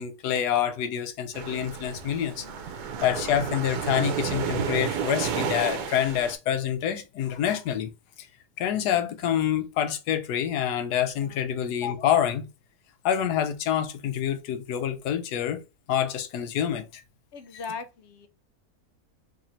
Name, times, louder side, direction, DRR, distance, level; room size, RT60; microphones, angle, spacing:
voice 1, 0.0-2.4 3.0-7.9 8.6-12.4 13.0-15.6 15.9-17.0, left 10 dB, 90° left, 1.2 m, -27 dB
sound 1, 1.3-6.3, right 7 dB, 90° right, 1.2 m, -31 dB
voice 2, 2.4-2.8 11.2-11.4 17.3-18.3, left 5 dB, 70° left, 0.7 m, -40 dB
4.3 x 3.3 x 2.5 m
omnidirectional pair, 1.6 m